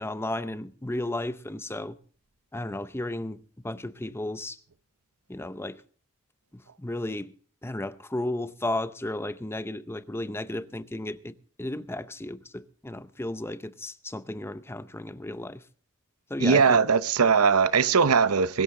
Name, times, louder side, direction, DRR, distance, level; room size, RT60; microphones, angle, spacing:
voice 1, 0.0-2.0 2.5-4.6 5.3-5.8 6.5-7.3 7.6-15.6 16.3-16.8, left 1 dB, 10° left, 0.6 m, -34 dB
voice 2, 16.4-18.6, right 5 dB, 75° right, 0.8 m, -20 dB
22.5 x 12.5 x 3.7 m
head